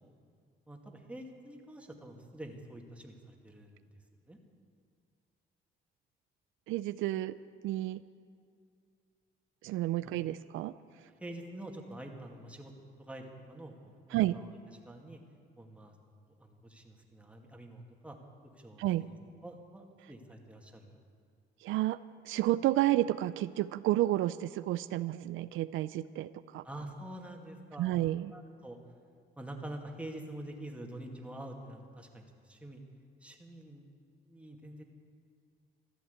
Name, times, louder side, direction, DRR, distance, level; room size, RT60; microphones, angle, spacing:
voice 1, 0.7-3.8 4.3-4.4 11.2-12.7 13.0-14.5 14.9-15.2 15.6-15.9 16.4-18.2 18.6-19.1 19.4-21.0 26.6-28.0 28.3-28.8 29.4-32.8 33.2-33.8 34.2-34.8, right 1 dB, 5° right, 1 dB, 2.2 m, -46 dB
voice 2, 6.7-7.4 7.6-8.0 9.6-10.7 14.1-14.4 18.8-19.1 21.6-22.0 22.2-26.6 27.8-28.3, right 15 dB, 85° right, 15 dB, 0.4 m, -31 dB
14.0 x 12.0 x 8.2 m, 2.3 s
cardioid pair, 90°, 20 cm